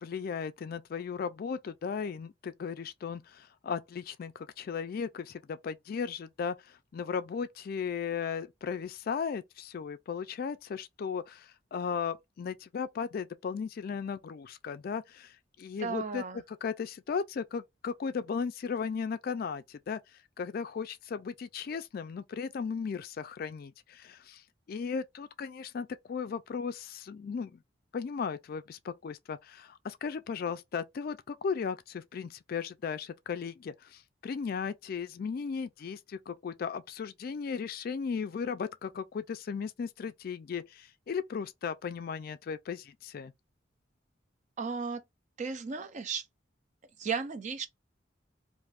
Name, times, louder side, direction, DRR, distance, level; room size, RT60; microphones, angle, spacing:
voice 1, 0.0-16.2 16.6-20.0 20.4-24.4 24.7-27.6 27.9-43.3, left 6 dB, 50° left, 0.3 m, -36 dB
voice 2, 15.8-16.4 44.6-45.0 45.4-46.3 47.0-47.7, right 5 dB, 40° right, 0.4 m, -34 dB
2.5 x 2.4 x 3.4 m
head